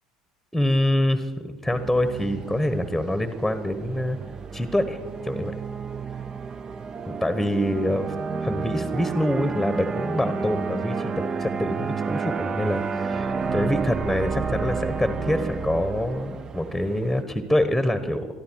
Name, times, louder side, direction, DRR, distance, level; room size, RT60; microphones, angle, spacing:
voice 1, 0.5-4.2 4.5-5.0 5.2-5.5 7.1-8.1 8.4-18.3, left 1 dB, ahead, 10 dB, 1.3 m, -25 dB
sound 1, 1.7-17.2, right 5 dB, 30° right, 0.8 m, -31 dB
22.5 x 13.5 x 4.7 m, 1.3 s
figure-of-eight pair, 65°, 2 cm